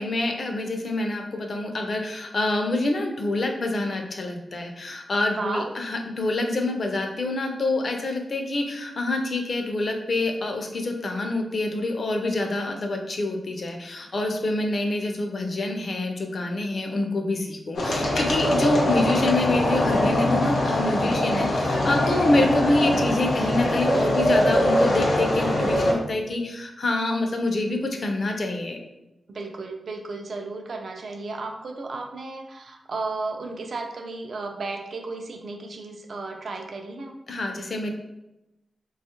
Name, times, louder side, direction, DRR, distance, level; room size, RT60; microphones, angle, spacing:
voice 1, 0.0-28.8 37.3-37.9, left 2 dB, 45° left, 3 dB, 0.4 m, -26 dB
voice 2, 5.3-5.7 12.4-12.8 22.3-22.6 29.3-37.2, right 3 dB, 60° right, 3 dB, 0.4 m, -34 dB
sound 1, 17.7-25.9, left 1 dB, 90° left, 0.7 m, -22 dB
3.4 x 2.3 x 2.8 m, 0.91 s
wide cardioid pair, 160°, 0 cm